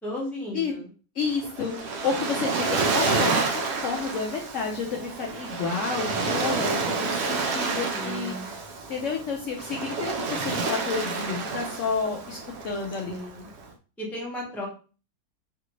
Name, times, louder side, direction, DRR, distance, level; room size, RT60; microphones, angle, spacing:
voice 1, 0.0-0.9 7.9-8.5 13.1-13.5 14.0-14.7, left 1 dB, ahead, -3 dB, 0.7 m, -35 dB
voice 2, 1.2-8.3 8.9-12.4 12.6-13.1, left 5 dB, 65° left, 0 dB, 0.8 m, -30 dB
Waves surf, 1.2-13.6, right 4 dB, 85° right, 0.5 m, -29 dB
3.3 x 2.5 x 2.9 m, 0.37 s
omnidirectional pair, 1.7 m